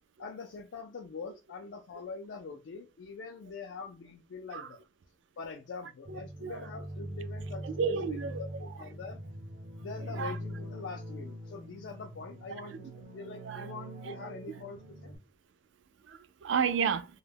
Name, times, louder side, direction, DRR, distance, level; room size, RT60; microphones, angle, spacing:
voice 1, 0.2-4.8 5.4-9.2 9.8-15.1, left 4 dB, 80° left, 0.4 m, -44 dB
sound 1, 6.1-15.2, right 1 dB, 55° right, 0.7 m, -43 dB
voice 2, 6.1-6.6 7.6-8.4 10.2-10.3 13.5-13.7 14.1-14.2 16.1-17.1, right 6 dB, 80° right, 0.3 m, -31 dB
2.2 x 2.0 x 3.3 m
head